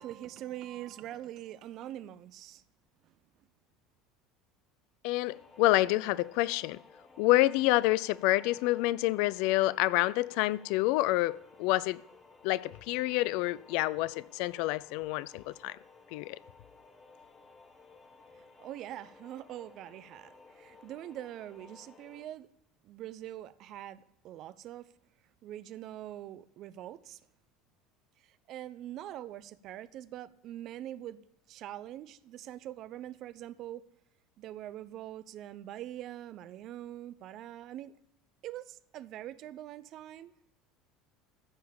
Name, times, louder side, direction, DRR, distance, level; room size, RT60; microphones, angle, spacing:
voice 1, 0.0-2.6 3.0-3.1 18.3-22.5 22.8-24.9 25.4-27.2 28.2-31.2 31.5-33.8 34.4-37.9 38.4-40.3, right 12 dB, 50° right, 0.6 m, -43 dB
voice 2, 5.0-6.8 7.2-12.0 12.4-15.8 16.1-16.4, left 18 dB, 60° left, 0.4 m, -28 dB
sound 1, 5.2-22.2, left 4 dB, 25° left, 1.8 m, -57 dB
14.5 x 5.7 x 7.0 m
figure-of-eight pair, 70°, 0 cm